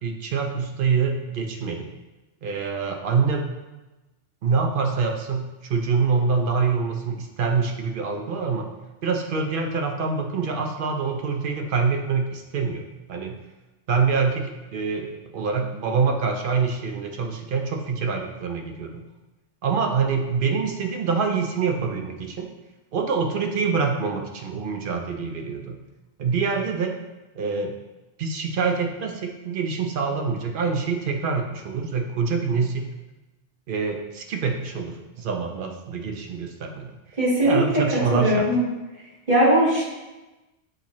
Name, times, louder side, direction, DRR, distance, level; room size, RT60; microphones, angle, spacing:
voice 1, 0.0-1.9 2.4-3.5 4.4-8.7 9.0-12.8 13.1-13.4 13.9-19.0 19.6-22.5 22.9-25.8 26.2-26.9 27.4-27.8 28.2-32.9 33.7-36.9 37.4-38.4, right 5 dB, 60° right, 3 dB, 0.6 m, -25 dB
voice 2, 37.2-37.6 38.1-38.6 39.3-39.9, right 1 dB, 40° right, -8 dB, 1.5 m, -19 dB
6.4 x 2.8 x 3.0 m, 1.1 s
omnidirectional pair, 1.2 m